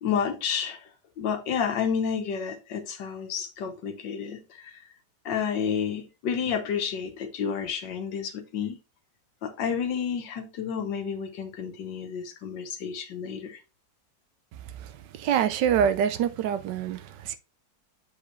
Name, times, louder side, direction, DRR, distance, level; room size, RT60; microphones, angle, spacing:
voice 1, 0.0-0.8 1.2-4.8 5.3-8.8 9.4-13.6, left 7 dB, 80° left, 1.7 m, -30 dB
voice 2, 14.5-17.4, right 8 dB, 75° right, 1.3 m, -26 dB
7.0 x 4.8 x 3.1 m
omnidirectional pair, 1.9 m